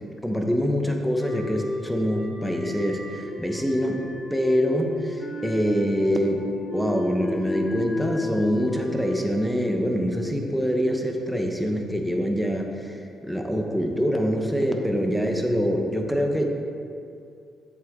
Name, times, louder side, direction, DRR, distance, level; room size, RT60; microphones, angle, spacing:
voice 1, 0.2-4.0 4.3-6.5 6.7-16.5, equal, ahead, 2 dB, 0.9 m, -25 dB
sound 1, 1.2-10.4, left 2 dB, 30° left, 0.8 m, -34 dB
7.9 x 7.6 x 3.6 m, 2.5 s
cardioid pair, 90°, 0 cm